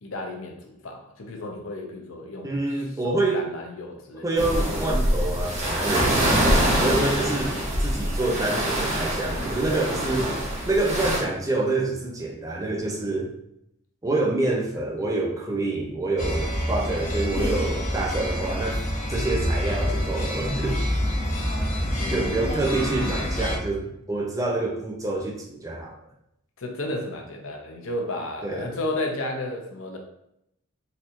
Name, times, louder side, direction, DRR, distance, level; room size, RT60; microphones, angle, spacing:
voice 1, 0.0-2.5 3.0-4.3 22.0-22.6 26.6-30.0, left 2 dB, 70° left, 2 dB, 0.7 m, -33 dB
voice 2, 2.4-3.5 4.2-7.5 7.8-10.3 10.7-13.3 14.0-18.8 19.1-20.8 22.1-26.0 28.4-28.8, right 2 dB, 15° right, -1 dB, 0.5 m, -27 dB
sound 1, 4.4-11.2, right 1 dB, 35° right, 1.0 m, -24 dB
sound 2, 16.2-23.6, equal, 35° left, 0.9 m, -27 dB
4.1 x 2.9 x 2.6 m, 0.79 s
head